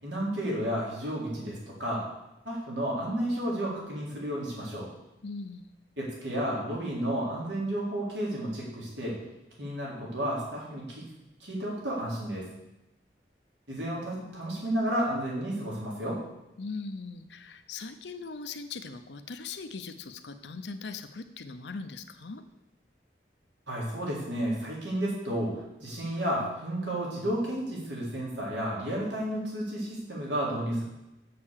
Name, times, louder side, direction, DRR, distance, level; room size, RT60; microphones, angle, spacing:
voice 1, 0.0-2.0 2.5-4.9 6.0-9.2 9.6-11.0 11.4-12.5 13.7-16.2 23.7-30.8, right 1 dB, 85° right, -4 dB, 3.7 m, -32 dB
voice 2, 5.2-5.7 16.6-22.4, left 4 dB, 80° left, 9 dB, 0.7 m, -40 dB
7.6 x 6.8 x 7.3 m, 0.92 s
head